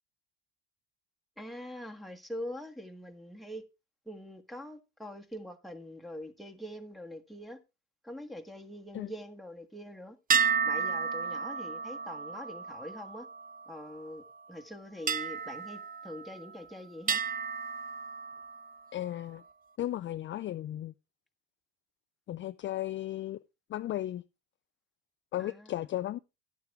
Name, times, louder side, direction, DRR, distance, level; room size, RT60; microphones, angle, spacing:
voice 1, 1.4-3.6 4.1-7.6 8.0-10.2 10.6-13.3 13.7-14.2 14.5-17.2 25.4-25.7, left 1 dB, ahead, 1.5 m, -44 dB
sound 1, 10.3-14.0 15.1-16.6 17.1-18.8, right 6 dB, 25° right, 0.7 m, -32 dB
voice 2, 18.9-19.4 19.8-20.9 22.3-23.4 23.7-24.2 25.3-26.2, left 13 dB, 35° left, 0.4 m, -35 dB
11.5 x 9.3 x 3.4 m
supercardioid pair, 85°, 35 cm